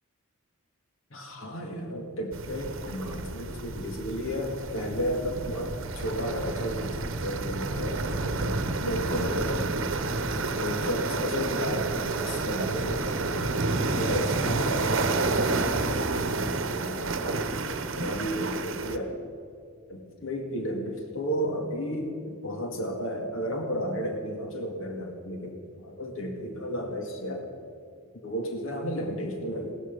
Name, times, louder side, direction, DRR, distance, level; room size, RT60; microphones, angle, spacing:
voice 1, 1.1-9.9 10.4-13.5 13.9-17.5 17.9-19.2 19.9-27.5 28.2-29.7, equal, 65° left, 3 dB, 2.0 m, -33 dB
sound 1, 2.3-19.0, right 3 dB, 60° right, 1.0 m, -30 dB
18.5 x 13.0 x 5.3 m, 2.3 s
head